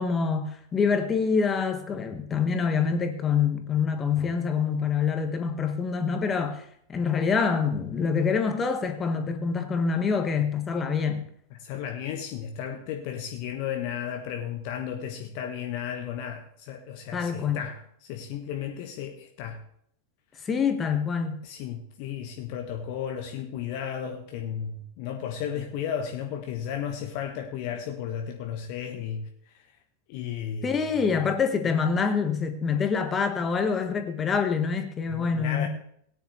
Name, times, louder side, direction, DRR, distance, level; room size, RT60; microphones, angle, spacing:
voice 1, 0.0-11.2 17.1-17.6 20.4-21.4 30.6-35.7, left 5 dB, 20° left, 1.6 m, -26 dB
voice 2, 11.5-19.6 21.4-29.7 30.1-31.2 31.6-31.7 35.1-35.7, left 8 dB, 45° left, 1.2 m, -34 dB
17.5 x 9.9 x 3.3 m
figure-of-eight pair, 90°, 0 cm